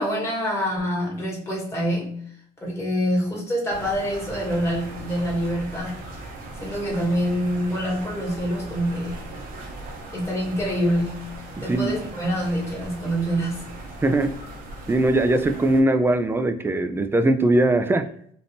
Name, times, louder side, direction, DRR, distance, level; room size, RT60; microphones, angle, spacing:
voice 1, 0.0-2.2 2.6-6.0 6.6-9.2 10.1-13.7, equal, 15° left, -4 dB, 1.5 m, -26 dB
sound 1, 3.7-15.8, right 2 dB, 60° right, 0.8 m, -39 dB
voice 2, 14.0-14.3 14.9-18.1, right 2 dB, 15° right, 9 dB, 0.3 m, -20 dB
3.5 x 2.5 x 2.7 m, 0.63 s
cardioid pair, 105°, 17 cm